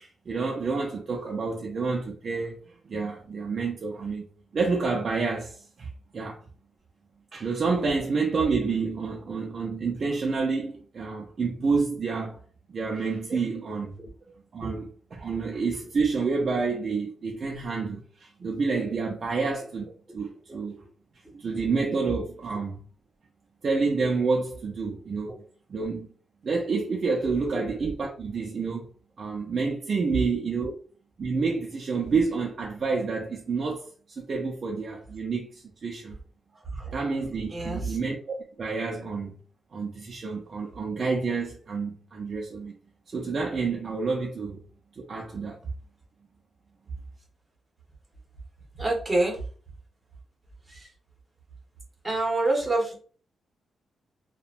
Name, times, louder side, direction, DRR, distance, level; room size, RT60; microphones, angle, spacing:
voice 1, 0.0-4.2 4.5-5.9 6.1-6.4 7.3-12.4 12.7-14.0 14.3-19.9 20.1-20.8 21.3-22.8 23.6-25.3 25.7-26.1 26.4-28.9 29.2-30.7 31.2-36.2 36.9-39.3 39.7-42.8 43.1-44.6 44.9-45.6, right 4 dB, 45° right, 0.5 m, -29 dB
voice 2, 37.5-38.0 48.7-49.4 50.7-50.9 52.0-53.0, right 2 dB, 15° right, 1.0 m, -27 dB
2.8 x 2.2 x 2.5 m
cardioid pair, 115°, 0 cm